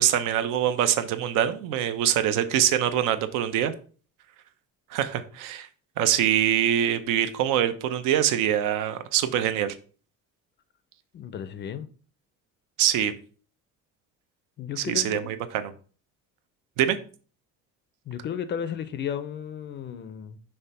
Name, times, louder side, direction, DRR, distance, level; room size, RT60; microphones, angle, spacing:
voice 1, 0.0-3.7 4.9-5.7 6.0-9.8 12.8-13.1 14.8-15.7 16.8-17.0, right 10 dB, 80° right, 0.8 m, -24 dB
voice 2, 11.1-11.9 14.6-15.4 18.1-20.4, left 8 dB, 35° left, 0.4 m, -34 dB
5.8 x 3.2 x 5.5 m
cardioid pair, 165°, 31 cm